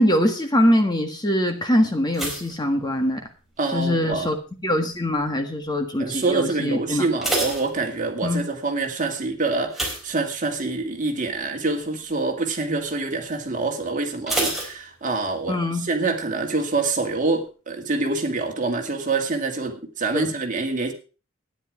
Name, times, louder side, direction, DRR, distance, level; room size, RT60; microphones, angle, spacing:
voice 1, 0.0-3.2 3.7-4.4 4.6-7.1 8.2-8.4 15.5-15.9 20.1-20.3, equal, 20° left, 5 dB, 1.6 m, -22 dB
sound 1, 2.1-3.6 3.8-4.4 5.0-5.3 5.6-5.7 6.1-6.2 6.9-8.4 9.7-10.8 11.2-11.5 11.8-11.9 14.3-15.5 15.7-15.8, right 1 dB, ahead, 4.1 m, -29 dB
voice 2, 3.6-4.3 6.0-20.9, right 3 dB, 40° right, 4 dB, 2.2 m, -26 dB
13.0 x 10.0 x 5.0 m, 0.35 s
head